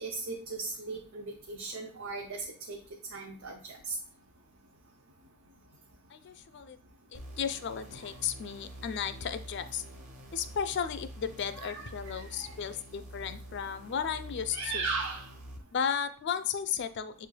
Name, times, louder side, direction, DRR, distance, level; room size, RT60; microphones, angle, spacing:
voice 1, 0.0-2.8 3.1-4.0 11.5-12.5 14.5-15.3, right 4 dB, 70° right, 1 dB, 0.6 m, -37 dB
voice 2, 6.1-6.8 7.1-9.8 10.3-14.8 15.7-17.3, left 7 dB, 55° left, 11 dB, 0.4 m, -34 dB
sound 1, 7.1-15.6, right 1 dB, 35° right, 0.8 m, -47 dB
7.0 x 3.2 x 2.2 m, 0.42 s
head